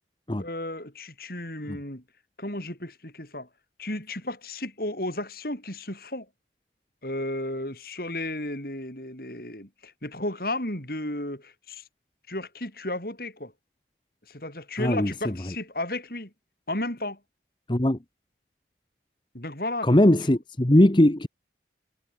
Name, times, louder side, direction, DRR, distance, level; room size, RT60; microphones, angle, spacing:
voice 1, 0.4-2.0 2.4-3.5 3.8-6.3 7.0-11.8 12.3-13.5 14.3-16.3 16.7-17.2 19.3-20.2, left 1 dB, 55° left, 6.7 m, -33 dB
voice 2, 14.8-15.1 17.7-18.0 19.8-21.3, left 1 dB, 25° left, 1.1 m, -19 dB
head